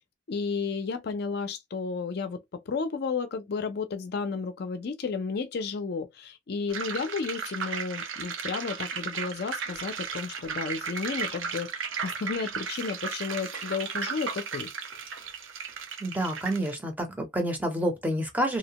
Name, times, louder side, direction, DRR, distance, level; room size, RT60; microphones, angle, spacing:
voice 1, 0.3-14.7, left 5 dB, 50° left, 0.4 m, -32 dB
sound 1, 6.7-16.7, right 6 dB, 75° right, 0.6 m, -35 dB
voice 2, 16.0-18.6, right 1 dB, 10° right, 0.6 m, -28 dB
2.7 x 2.1 x 2.8 m
head